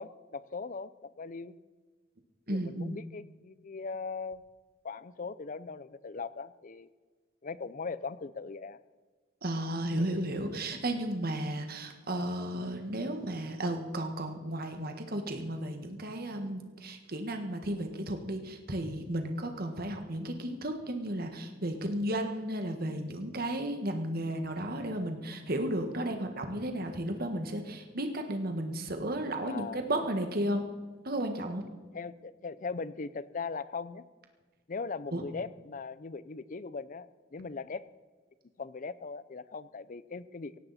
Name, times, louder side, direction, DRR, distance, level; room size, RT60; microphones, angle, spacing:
voice 1, 0.0-1.6 2.5-4.4 4.8-6.9 7.4-8.8 29.4-29.8 31.9-34.1 34.7-37.8 38.6-40.6, left 4 dB, 45° left, 17 dB, 0.5 m, -39 dB
voice 2, 2.5-3.0 9.4-30.7 31.0-31.6 35.1-35.2, right 1 dB, 50° right, 5 dB, 1.6 m, -34 dB
17.0 x 16.5 x 4.2 m, 1.4 s
head